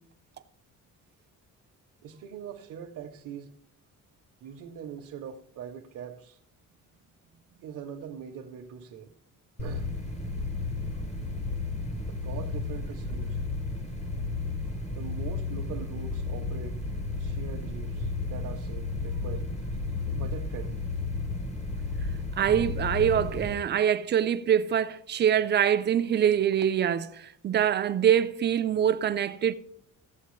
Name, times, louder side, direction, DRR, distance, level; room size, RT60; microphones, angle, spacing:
voice 1, 2.0-3.5 4.4-6.4 7.6-9.2 9.6-9.9 12.1-13.4 14.9-16.8 17.2-19.5 20.1-20.8, right 8 dB, 65° right, 0.7 m, -42 dB
sound 1, 9.6-23.5, left 3 dB, 20° left, 0.8 m, -33 dB
voice 2, 22.4-29.5, right 9 dB, 35° right, 0.4 m, -24 dB
14.5 x 7.5 x 3.1 m
cardioid pair, 170°, 31 cm